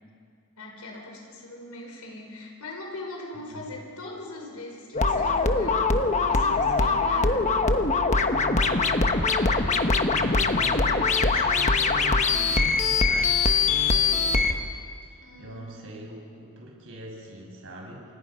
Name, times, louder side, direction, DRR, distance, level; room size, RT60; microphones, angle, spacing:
voice 1, 0.5-7.4 15.2-15.9, left 2 dB, 85° left, 0 dB, 4.8 m, -41 dB
voice 2, 3.3-3.7 8.2-8.9 9.4-14.5 15.0-18.0, right 1 dB, 65° right, -1 dB, 6.0 m, -41 dB
sound 1, 4.9-14.5, left 4 dB, 30° left, 1.3 m, -22 dB
29.5 x 26.0 x 5.7 m, 2.2 s
head